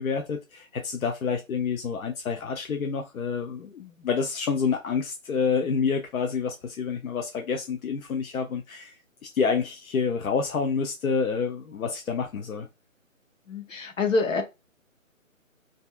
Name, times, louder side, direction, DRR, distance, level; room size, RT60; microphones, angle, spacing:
voice 1, 0.0-12.7, left 5 dB, 85° left, 0.6 m, -28 dB
voice 2, 13.5-14.4, left 3 dB, 65° left, 0.9 m, -26 dB
2.6 x 2.3 x 2.4 m
figure-of-eight pair, 155°, 41 cm